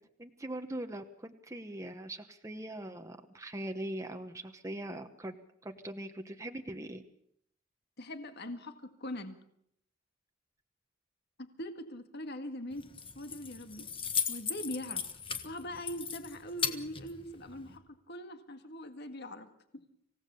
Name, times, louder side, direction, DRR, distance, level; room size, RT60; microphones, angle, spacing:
voice 1, 0.2-5.3 5.6-7.0, right 1 dB, 15° right, 5 dB, 1.0 m, -41 dB
voice 2, 8.0-9.4 11.4-13.9 14.3-15.0 15.4-19.5 19.7-19.8, left 1 dB, 55° left, 8 dB, 1.9 m, -42 dB
Keys jangling, 12.7-17.8, left 7 dB, 25° left, 1.5 m, -37 dB
26.5 x 17.0 x 7.0 m, 0.73 s
head